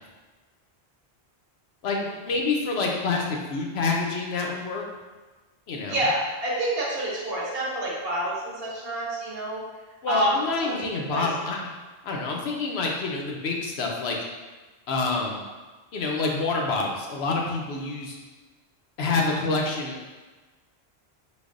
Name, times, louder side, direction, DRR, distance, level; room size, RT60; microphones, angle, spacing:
voice 1, 1.8-4.8 5.7-6.0 10.0-11.6 12.0-14.2 14.9-15.4 15.9-18.2 19.0-20.0, left 3 dB, 75° left, 0 dB, 0.8 m, -27 dB
voice 2, 5.9-9.6 10.1-11.2, right 1 dB, 65° right, -5 dB, 1.1 m, -28 dB
5.0 x 2.0 x 2.4 m, 1.3 s
omnidirectional pair, 1.1 m